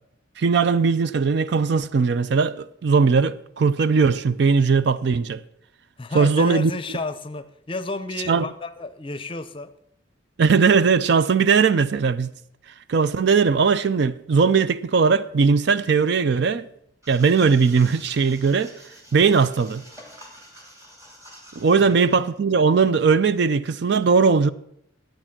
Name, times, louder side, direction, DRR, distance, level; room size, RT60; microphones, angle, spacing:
voice 1, 0.4-5.4 6.1-6.7 8.3-8.5 10.4-12.3 12.9-16.7 17.1-18.7 19.1-19.8 21.6-24.5, right 5 dB, 55° right, 0.4 m, -19 dB
voice 2, 6.0-9.7 21.7-22.0, left 3 dB, 25° left, 0.6 m, -32 dB
sound 1, 17.0-22.3, equal, 15° right, 2.2 m, -47 dB
11.5 x 8.9 x 5.9 m
head